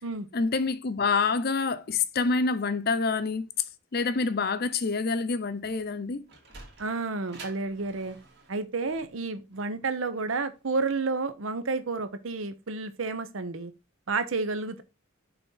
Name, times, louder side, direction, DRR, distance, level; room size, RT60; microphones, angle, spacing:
voice 1, 0.3-3.7 3.9-6.3, left 4 dB, 50° left, 0.6 m, -27 dB
Sliding door, 6.1-11.2, right 3 dB, 55° right, 2.1 m, -50 dB
voice 2, 6.8-8.2 8.5-13.7 14.1-14.8, right 3 dB, 75° right, 0.7 m, -30 dB
5.8 x 4.2 x 5.5 m
head